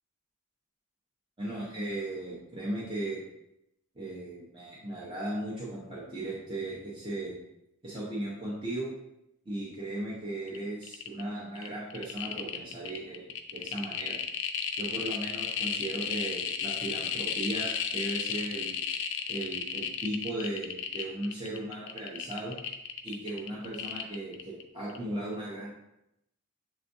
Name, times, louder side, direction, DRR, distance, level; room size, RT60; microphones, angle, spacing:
voice 1, 1.4-3.2 3.9-7.4 7.8-8.9 9.4-14.2 14.8-18.8 19.3-22.5 23.0-25.7, right 1 dB, 25° right, -7 dB, 0.8 m, -37 dB
sound 1, 10.5-10.6 10.8-11.2 11.6-24.6 24.9-25.0, left 7 dB, 60° left, 0.4 m, -33 dB
6.8 x 2.4 x 2.6 m, 0.83 s
head